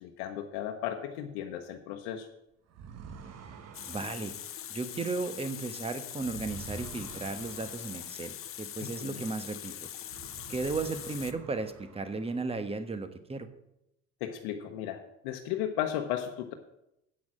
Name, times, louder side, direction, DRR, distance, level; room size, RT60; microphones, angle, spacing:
voice 1, 0.0-2.3 8.8-9.2 14.2-16.5, left 10 dB, 85° left, 4 dB, 0.9 m, -35 dB
sound 1, 2.7-9.6 10.0-12.6, right 5 dB, 55° right, 1.3 m, -49 dB
Water tap faucet, 3.7-11.3, left 11 dB, 45° left, 0.7 m, -42 dB
voice 2, 3.9-4.3 4.7-9.9 10.5-13.5, right 3 dB, 20° right, 10 dB, 1.1 m, -35 dB
8.6 x 6.0 x 7.5 m, 0.83 s
supercardioid pair, 90°, 31 cm